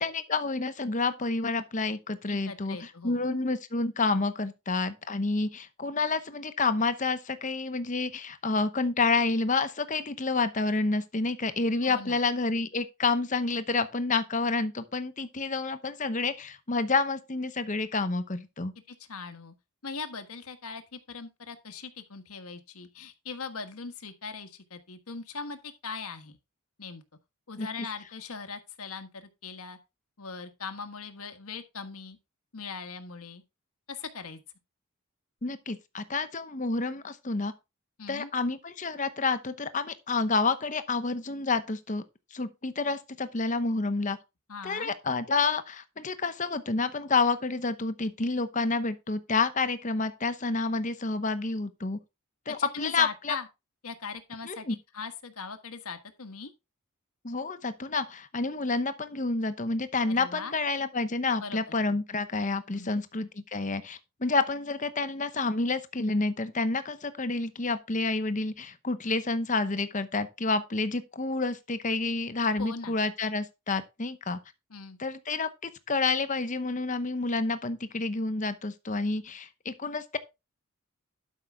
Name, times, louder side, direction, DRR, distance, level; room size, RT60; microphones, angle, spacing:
voice 1, 0.0-18.7 27.6-27.7 35.4-37.5 38.1-42.0 42.3-44.2 44.6-52.0 52.5-53.4 54.5-54.8 57.2-74.4 75.0-80.2, left 3 dB, 35° left, 0.9 m, -29 dB
voice 2, 2.3-3.3 11.8-12.2 18.9-19.5 19.8-26.4 26.8-27.0 27.5-29.8 30.2-32.2 32.5-33.4 33.9-34.4 38.0-38.3 44.5-44.9 52.6-53.5 53.8-54.7 54.9-56.5 60.1-60.5 61.4-61.6 61.9-62.0 62.8-63.0 72.6-73.0 74.7-75.0, left 4 dB, 80° left, 1.5 m, -40 dB
12.0 x 5.6 x 3.5 m
head